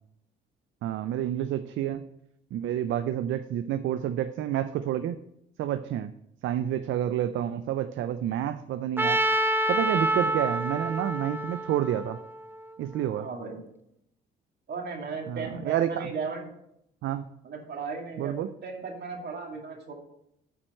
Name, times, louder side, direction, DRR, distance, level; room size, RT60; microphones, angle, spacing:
voice 1, 0.8-2.0 2.5-5.2 5.6-6.1 6.4-9.2 9.7-12.2 12.8-13.3 15.3-16.1 17.0-17.2 18.2-18.5, right 11 dB, 75° right, 11 dB, 0.5 m, -29 dB
Trumpet, 9.0-13.0, right 1 dB, 10° right, 0.5 m, -28 dB
voice 2, 13.2-13.6 14.7-16.5 17.4-19.9, right 4 dB, 55° right, 2 dB, 2.2 m, -36 dB
8.6 x 4.5 x 6.4 m, 0.77 s
cardioid pair, 90°, 20 cm